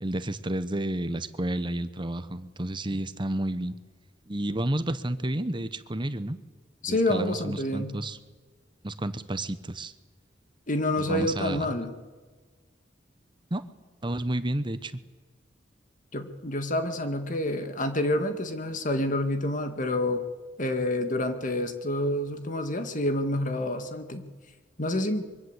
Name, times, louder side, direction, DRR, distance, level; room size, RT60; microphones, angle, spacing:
voice 1, 0.0-3.8 4.3-6.4 6.8-8.2 8.8-9.9 11.0-11.7 13.5-13.7 14.0-14.9, right 1 dB, 25° right, 13 dB, 1.1 m, -31 dB
voice 2, 6.8-7.9 10.7-11.9 16.1-20.2 20.6-24.3 24.8-25.2, left 1 dB, 45° left, 8 dB, 2.0 m, -28 dB
24.5 x 23.0 x 8.1 m, 1.4 s
head